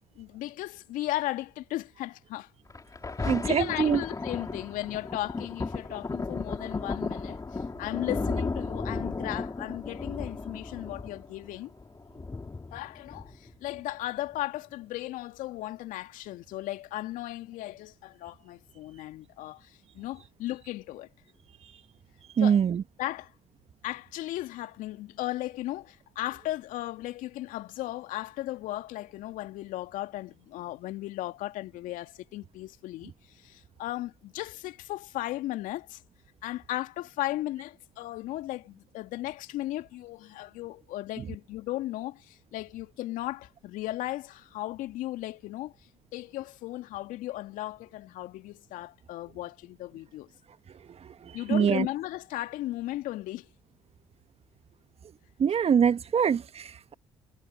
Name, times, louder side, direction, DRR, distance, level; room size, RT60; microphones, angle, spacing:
voice 1, 0.2-2.5 3.2-11.7 12.7-21.1 22.4-22.6 23.0-23.3 23.8-36.0 36.4-45.7 46.1-50.3 51.3-53.5, left 16 dB, 65° left, 2.2 m, -36 dB
Thunder, 2.7-13.7 14.3-14.4, left 3 dB, 25° left, 3.5 m, -35 dB
voice 2, 3.2-4.0 22.4-22.8 51.5-51.9 55.4-56.9, right 7 dB, 45° right, 1.7 m, -24 dB
hypercardioid pair, 55°, 14 cm